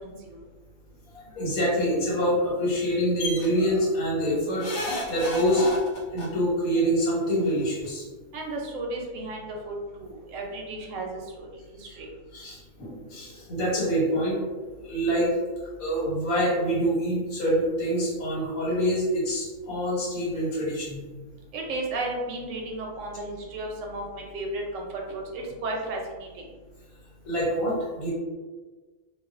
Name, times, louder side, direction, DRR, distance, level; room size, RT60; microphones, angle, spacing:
voice 1, 0.0-0.4 8.3-11.5 11.8-12.1 21.5-26.4, right 2 dB, 75° right, 0 dB, 0.9 m, -34 dB
voice 2, 1.1-4.7 5.1-5.8 6.1-8.0 12.3-14.4 14.8-15.3 15.8-21.0 27.2-28.1, equal, 85° left, -5 dB, 1.4 m, -26 dB
sound 1, 3.2-3.5 4.6-6.3 7.5-7.6 7.8-7.9, left 1 dB, 65° left, 0.8 m, -32 dB
2.4 x 2.3 x 2.4 m, 1.3 s
omnidirectional pair, 1.4 m